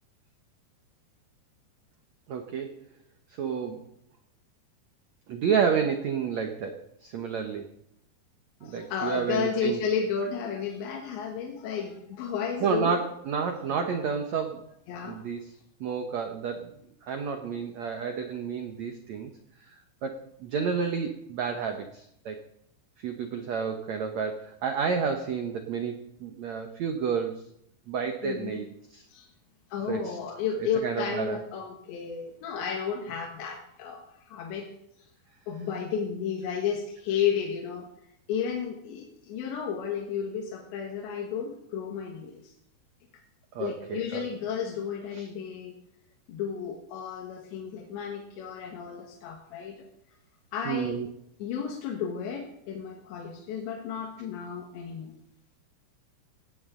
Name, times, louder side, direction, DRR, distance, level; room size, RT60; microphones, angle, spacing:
voice 1, 2.3-2.8 3.4-3.9 5.3-7.7 8.6-9.8 12.6-14.6 15.0-15.5 15.8-16.7 17.0-19.3 19.6-22.4 23.0-27.4 27.9-28.7 28.9-29.1 29.9-30.2 30.8-31.4 43.5-44.3 45.1-45.3 50.6-51.1, right 6 dB, 85° right, 5 dB, 1.5 m, -30 dB
voice 2, 8.6-13.0 14.9-15.2 28.2-28.6 29.1-29.3 29.7-34.7 35.5-37.9 38.3-42.5 43.6-45.8 46.3-49.9 50.5-51.0 51.4-55.1, left 7 dB, 90° left, 1 dB, 3.9 m, -32 dB
18.0 x 16.5 x 3.8 m, 0.74 s
omnidirectional pair, 5.0 m